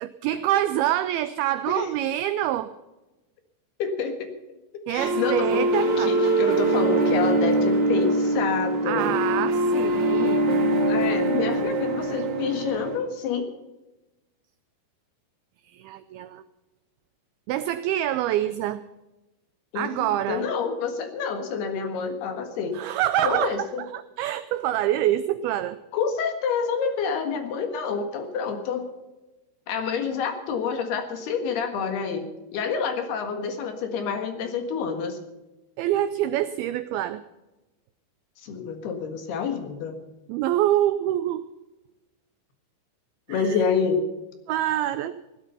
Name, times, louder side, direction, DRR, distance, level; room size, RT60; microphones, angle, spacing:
voice 1, 0.0-2.7 4.9-6.1 8.9-10.4 15.6-16.4 17.5-18.8 19.8-20.5 22.7-25.8 29.8-29.9 35.8-37.2 40.3-41.5 43.3-43.6 44.5-45.2, right 12 dB, 90° right, 12 dB, 2.2 m, -26 dB
voice 2, 3.8-4.3 4.7-9.1 10.9-13.5 19.7-22.8 23.2-23.8 25.9-28.9 29.7-32.3 32.5-35.2 38.4-40.0 43.3-44.0, left 5 dB, 70° left, 6 dB, 3.6 m, -28 dB
sound 1, 5.0-13.0, right 2 dB, 50° right, 3.0 m, -23 dB
16.5 x 12.5 x 5.6 m, 1.0 s
omnidirectional pair, 5.1 m